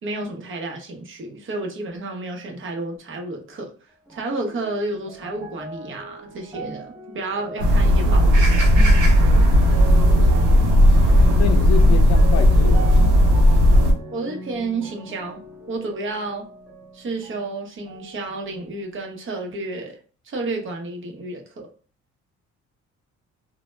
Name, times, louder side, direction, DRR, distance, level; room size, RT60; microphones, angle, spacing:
voice 1, 0.0-3.7 4.1-8.5 14.1-16.5 16.9-20.0 20.2-21.7, right 2 dB, 40° right, 0.7 m, -31 dB
sound 1, 4.1-17.5 17.9-18.8 19.5-19.6, right 2 dB, 5° right, 0.7 m, -37 dB
sound 2, 7.6-13.9, equal, 85° right, 0.7 m, -15 dB
voice 2, 11.4-13.0, left 8 dB, 60° left, 0.4 m, -28 dB
2.1 x 2.1 x 3.1 m
cardioid pair, 90°, 30 cm